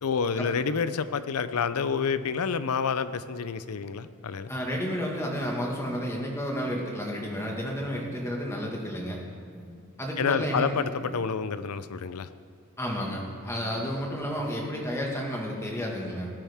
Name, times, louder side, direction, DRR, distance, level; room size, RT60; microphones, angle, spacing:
voice 1, 0.0-4.5 10.2-12.3, left 6 dB, 80° left, 13 dB, 0.5 m, -28 dB
voice 2, 4.5-9.2 10.0-10.8 12.8-16.3, equal, 10° left, -1 dB, 1.7 m, -31 dB
Alarm, 5.7-11.4, equal, 50° right, 1.7 m, -52 dB
17.5 x 10.5 x 3.6 m, 2.2 s
head